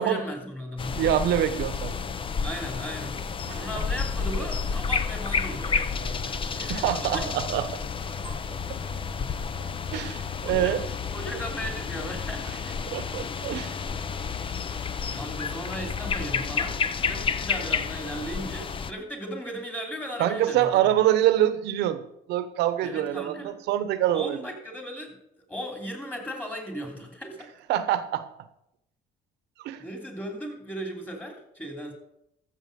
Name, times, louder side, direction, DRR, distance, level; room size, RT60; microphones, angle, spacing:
voice 1, 0.0-1.3 2.4-3.2 3.5-7.3 10.4-12.4 15.1-20.7 22.8-23.6 24.1-25.2 25.5-27.5 29.8-31.9, equal, 10° left, 2 dB, 3.2 m, -36 dB
sound 1, 0.8-18.9, left 5 dB, 30° left, 0.7 m, -30 dB
voice 2, 0.9-1.9 3.5-3.6 6.5-7.6 8.2-8.3 9.9-10.8 12.9-13.8 20.2-22.0 22.3-24.4 27.7-28.2 29.6-29.8, right 12 dB, 85° right, 12 dB, 1.0 m, -25 dB
13.5 x 7.4 x 5.3 m, 0.80 s
cardioid pair, 110°, 17 cm